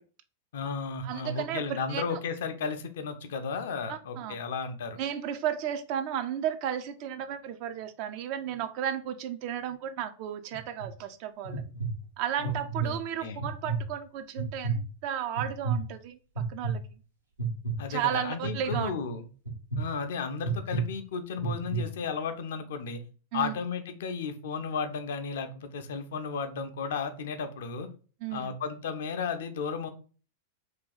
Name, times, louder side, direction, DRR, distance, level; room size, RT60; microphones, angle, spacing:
voice 1, 0.5-5.0 12.4-12.5 12.8-13.4 17.8-19.2 19.8-23.0 23.3-27.9 28.3-29.9, left 5 dB, 60° left, 0.4 m, -34 dB
voice 2, 1.0-2.2 3.9-4.4 5.0-11.6 12.2-16.8 17.9-18.9 23.3-23.5 28.2-28.5, right 10 dB, 45° right, 0.3 m, -34 dB
sound 1, 10.5-10.9 11.4-11.9 12.4-12.9 13.4-13.8 14.4-14.8 15.4-15.8 16.4-16.7 17.4-17.8 18.4-18.8 19.5-19.8 20.4-20.8 21.4-21.8, right 5 dB, 85° right, 0.8 m, -30 dB
2.5 x 2.3 x 3.8 m
figure-of-eight pair, 95°, 0 cm